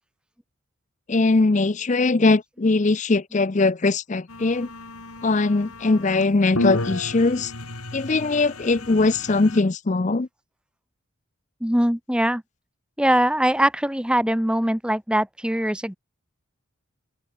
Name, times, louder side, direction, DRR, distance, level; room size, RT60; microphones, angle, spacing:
voice 1, 1.1-4.7 5.2-7.5 7.9-10.3, left 3 dB, 35° left, 0.5 m, -21 dB
sound 1, 4.3-9.6, left 1 dB, 90° left, 4.5 m, -32 dB
voice 2, 11.6-12.4 13.0-16.0, right 1 dB, 5° right, 1.4 m, -22 dB
open air
head